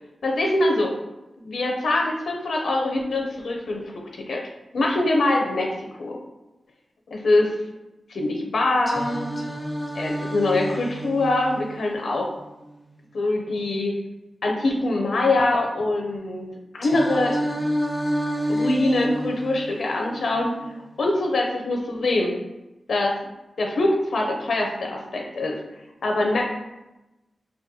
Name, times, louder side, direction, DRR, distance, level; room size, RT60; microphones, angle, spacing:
voice 1, 0.2-0.9 1.4-3.8 4.1-4.4 4.7-5.7 6.0-6.2 7.1-7.5 8.1-9.3 9.9-12.3 13.1-13.9 14.4-16.5 16.7-17.4 18.5-20.6 21.0-22.4 22.9-23.1 23.6-25.6 26.0-26.4, left 2 dB, 75° left, 0 dB, 0.4 m, -23 dB
Singing, 8.9-12.9 16.8-20.9, equal, 15° left, 0.4 m, -30 dB
3.6 x 2.1 x 2.7 m, 0.98 s
wide cardioid pair, 120°, 0 cm